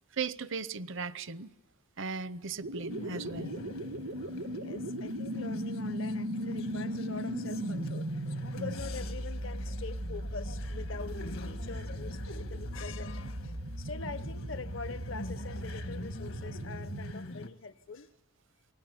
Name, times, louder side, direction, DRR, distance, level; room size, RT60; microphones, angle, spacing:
voice 1, 0.1-1.5 2.0-3.5 8.6-8.7, right 5 dB, 60° right, 0.7 m, -37 dB
sound 1, 2.6-17.2, right 1 dB, 85° right, 2.1 m, -38 dB
sound 2, 2.9-17.5, left 1 dB, 75° left, 1.6 m, -45 dB
voice 2, 4.4-8.1 8.5-18.1, left 4 dB, 60° left, 0.8 m, -44 dB
29.5 x 20.0 x 8.1 m
head